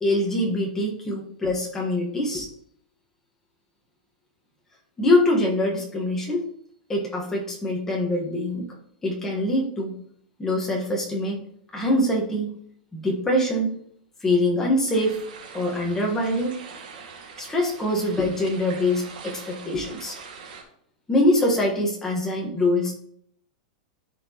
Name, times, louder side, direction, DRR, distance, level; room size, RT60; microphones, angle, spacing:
voice 1, 0.0-2.5 5.0-6.4 6.9-8.6 9.0-10.0 10.4-11.4 11.7-12.5 12.9-13.7 14.2-15.2 15.5-16.5 17.4-20.1 21.1-22.9, left 1 dB, 10° left, -2 dB, 1.4 m, -24 dB
sound 1, 14.9-20.6, right 5 dB, 85° right, 2.1 m, -43 dB
12.0 x 4.4 x 3.0 m, 0.67 s
supercardioid pair, 165°, 5 cm